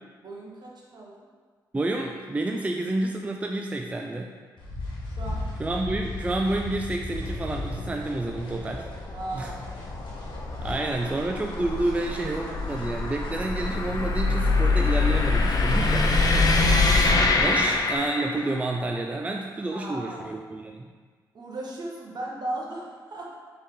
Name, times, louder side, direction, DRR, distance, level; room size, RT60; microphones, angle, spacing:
voice 1, 0.2-1.2 5.1-5.5 9.1-9.9 10.6-10.8 17.4-17.6 19.7-20.4 21.3-23.3, right 1 dB, 60° right, -3 dB, 1.0 m, -37 dB
voice 2, 1.7-4.3 5.6-8.9 9.3-9.5 10.6-16.2 17.4-20.9, right 2 dB, 15° right, 2 dB, 0.3 m, -29 dB
sound 1, 4.6-18.0, left 2 dB, 75° left, 1.2 m, -38 dB
sound 2, 7.2-18.6, left 3 dB, 50° left, 0.6 m, -25 dB
4.1 x 3.4 x 3.7 m, 1.5 s
cardioid pair, 70°, 8 cm